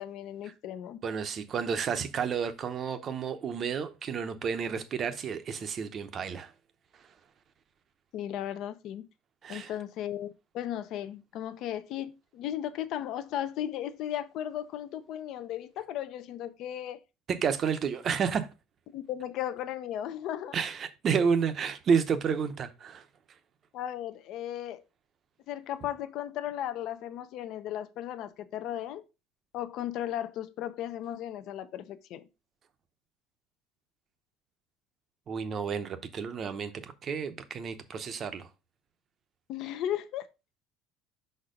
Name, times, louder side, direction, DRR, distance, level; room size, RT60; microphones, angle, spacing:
voice 1, 0.0-1.0 8.1-9.0 9.5-17.0 18.9-20.6 23.7-24.8 25.5-29.0 29.5-32.2 39.5-40.3, left 11 dB, 50° left, 0.7 m, -36 dB
voice 2, 1.0-6.5 9.4-9.7 17.3-18.5 20.5-23.0 35.3-38.5, right 6 dB, 30° right, 0.7 m, -30 dB
5.8 x 4.3 x 5.0 m
cardioid pair, 160°, 0 cm